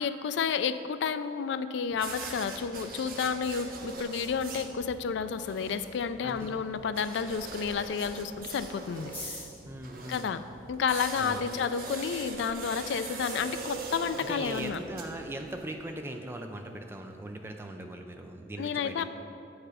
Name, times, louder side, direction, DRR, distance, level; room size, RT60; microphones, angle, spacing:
voice 1, 0.0-9.4 10.1-10.4 10.7-14.8 18.6-19.0, left 6 dB, 70° left, 12 dB, 0.3 m, -31 dB
sound 1, 1.9-15.7, right 3 dB, 50° right, 0.6 m, -42 dB
sound 2, 5.0-17.6, left 1 dB, 10° left, 1.8 m, -53 dB
voice 2, 6.2-6.6 9.7-10.3 11.2-11.4 14.2-19.0, right 1 dB, 10° right, 4 dB, 0.4 m, -40 dB
7.6 x 4.8 x 4.9 m, 2.6 s
head